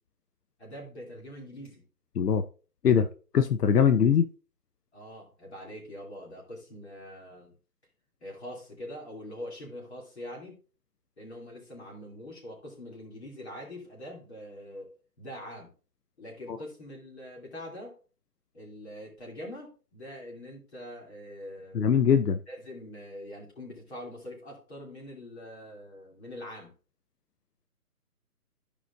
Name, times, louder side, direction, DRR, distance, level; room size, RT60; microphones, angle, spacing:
voice 1, 0.6-1.8 4.9-7.5 8.2-10.6 11.2-14.9 15.2-15.7 16.2-18.0 18.5-21.8 22.5-26.7, left 1 dB, 45° left, 2.8 m, -43 dB
voice 2, 3.3-4.3 16.5-16.6 21.7-22.4, left 7 dB, 85° left, 0.7 m, -22 dB
13.5 x 5.0 x 2.6 m
hypercardioid pair, 175°, 46 cm